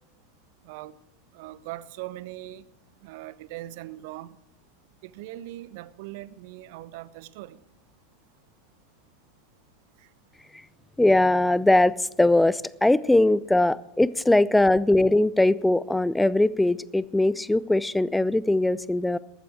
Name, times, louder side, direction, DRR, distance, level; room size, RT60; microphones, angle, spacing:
voice 1, 1.3-2.6 3.0-4.4 5.0-7.6 10.0-10.1, right 15 dB, 50° right, 0.6 m, -40 dB
voice 2, 11.0-19.2, left 2 dB, 5° left, 0.5 m, -21 dB
14.0 x 13.5 x 4.8 m
figure-of-eight pair, 85°, 0 cm